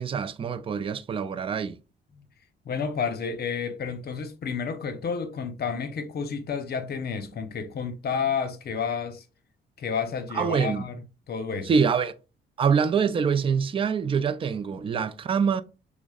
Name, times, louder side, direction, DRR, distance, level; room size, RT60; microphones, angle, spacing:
voice 1, 0.0-1.8 10.3-10.9 11.6-12.1 12.6-15.6, right 6 dB, 25° right, 0.4 m, -25 dB
voice 2, 2.6-9.2 9.8-11.0 11.3-11.8, left 6 dB, 55° left, 0.8 m, -30 dB
6.0 x 2.1 x 2.3 m
cardioid pair, 90°, 20 cm